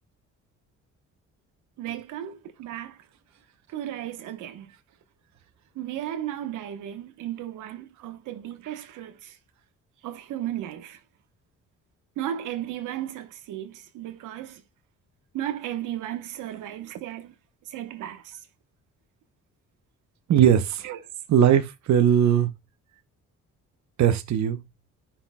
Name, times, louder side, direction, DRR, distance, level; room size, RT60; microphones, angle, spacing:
voice 1, 1.8-3.0 3.7-4.7 5.7-9.3 10.0-11.0 12.2-14.6 15.3-17.3 17.7-18.4 20.8-21.0, right 12 dB, 90° right, 1.2 m, -35 dB
voice 2, 20.3-20.9 21.3-22.5 24.0-24.6, right 9 dB, 65° right, 1.0 m, -19 dB
11.5 x 5.8 x 2.3 m
cardioid pair, 90°, 30 cm